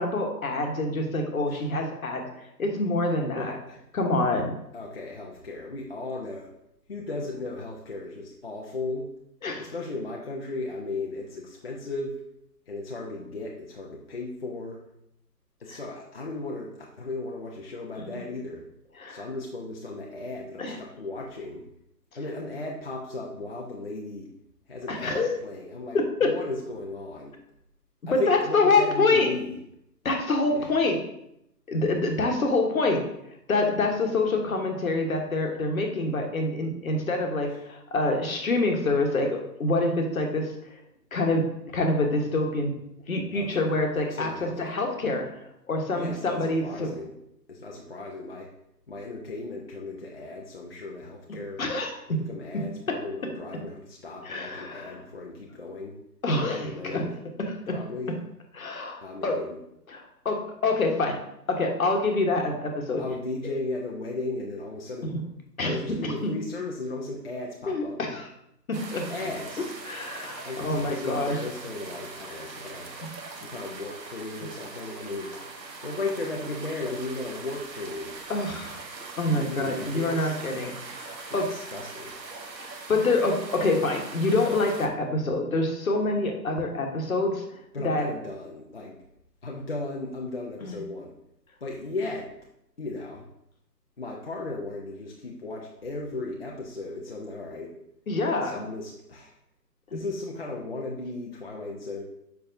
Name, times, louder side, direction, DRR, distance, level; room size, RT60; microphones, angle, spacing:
voice 1, 0.0-3.6 3.9-4.5 9.4-9.7 15.7-15.8 18.0-18.2 19.0-19.2 20.6-20.8 24.9-25.3 25.9-26.3 28.1-29.3 30.0-31.0 31.7-33.0 33.5-40.5 41.1-41.5 41.7-42.7 43.1-45.3 45.7-46.9 51.6-52.2 52.9-53.0 54.2-55.0 56.2-57.0 57.5-57.8 58.5-59.4 59.9-61.2 61.5-63.0 65.0-65.2 65.6-66.3 67.7-68.3 68.7-69.1 69.8-71.4 78.3-78.8 79.2-81.5 82.5-87.6 87.8-88.1 90.6-90.8 98.1-98.6 99.9-100.0, left 2 dB, 55° left, 3 dB, 1.3 m, -26 dB
voice 2, 3.4-3.8 4.7-6.5 6.9-9.1 9.6-12.2 12.7-14.8 15.6-18.7 19.1-21.7 22.1-24.3 24.7-27.4 28.1-29.5 30.5-30.7 37.5-37.6 43.3-43.7 44.1-44.5 45.9-47.1 47.5-48.5 48.9-51.6 52.1-56.0 56.4-57.2 57.7-58.1 59.0-59.6 63.0-65.1 65.6-68.0 69.1-69.7 70.4-72.9 73.3-75.4 75.8-78.2 79.2-80.4 81.3-82.1 87.7-89.0 89.4-91.1 91.6-92.3 92.8-93.3 94.0-97.8 98.4-99.3 99.9-102.0, left 2 dB, 40° left, -2 dB, 0.6 m, -36 dB
sound 1, 68.7-84.9, right 3 dB, 85° right, 1.1 m, -41 dB
6.9 x 5.1 x 2.6 m, 0.79 s
figure-of-eight pair, 155°, 50 cm